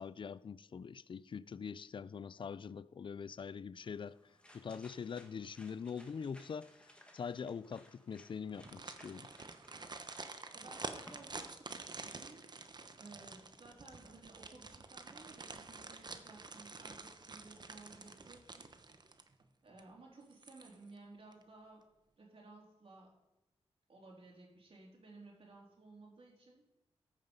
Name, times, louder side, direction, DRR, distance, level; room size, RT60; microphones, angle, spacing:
voice 1, 0.0-4.2 4.5-9.3, left 6 dB, 45° left, 0.4 m, -44 dB
sound 1, 3.8-11.4, left 1 dB, 10° left, 1.5 m, -62 dB
sound 2, 8.5-19.4 19.8-19.9 20.3-21.0 21.3-21.4, right 3 dB, 40° right, 0.9 m, -49 dB
voice 2, 10.5-12.5 12.9-18.7 19.6-21.8 22.2-23.2 23.9-26.7, right 3 dB, 55° right, 3.5 m, -57 dB
14.0 x 5.8 x 5.4 m
cardioid pair, 75°, 11 cm